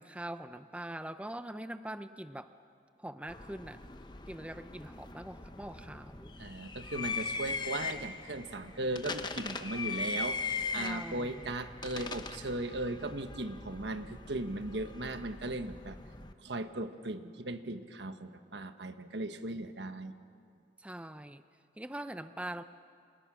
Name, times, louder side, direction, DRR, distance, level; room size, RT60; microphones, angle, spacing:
voice 1, 0.0-2.5 3.0-3.8 4.3-6.4 10.7-11.5 20.8-21.4 21.8-22.6, right 1 dB, 5° right, 10 dB, 0.6 m, -43 dB
sound 1, 3.3-16.3, left 4 dB, 25° left, 0.9 m, -40 dB
voice 2, 6.4-16.0 16.4-20.1, right 2 dB, 85° right, 8 dB, 1.4 m, -37 dB
29.0 x 28.5 x 6.3 m, 2.3 s
head